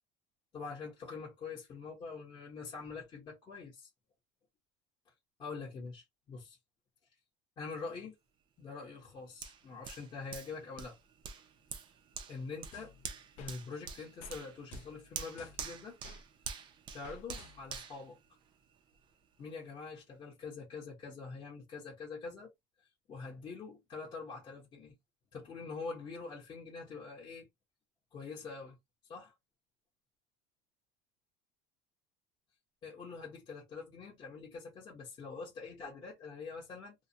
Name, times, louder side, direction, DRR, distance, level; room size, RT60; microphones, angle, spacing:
voice 1, 0.5-3.9 5.4-6.6 7.6-8.1 8.6-11.0 12.3-12.9 13.4-16.0 16.9-18.2 19.4-22.5 23.1-24.9 25.3-27.5 28.1-28.8 29.1-29.3 32.8-36.9, left 4 dB, 30° left, 0.8 m, -45 dB
Hands, 9.4-18.9 19.4-19.5, right 6 dB, 30° right, 0.4 m, -47 dB
sound 1, 12.7-13.6 14.2-14.4 14.7-16.2 17.0-17.9, left 2 dB, 50° left, 0.4 m, -54 dB
2.3 x 2.1 x 2.6 m
cardioid pair, 155°, 16 cm